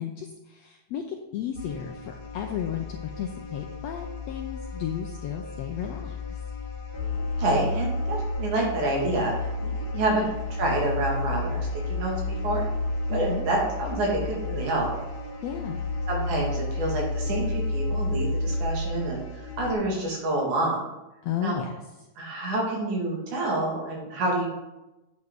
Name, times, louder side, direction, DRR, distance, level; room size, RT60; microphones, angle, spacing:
voice 1, 0.0-6.4 10.1-10.3 13.1-13.5 15.4-15.8 21.2-21.8, left 9 dB, 90° left, 4 dB, 1.5 m, -34 dB
sound 1, 1.6-19.7, left 2 dB, 60° left, 2.9 m, -31 dB
voice 2, 7.4-12.6 13.1-14.9 16.1-19.2 19.6-20.8 21.4-21.6 22.2-24.5, right 2 dB, 65° right, -2 dB, 3.4 m, -28 dB
9.5 x 7.8 x 3.7 m, 1.0 s
omnidirectional pair, 3.7 m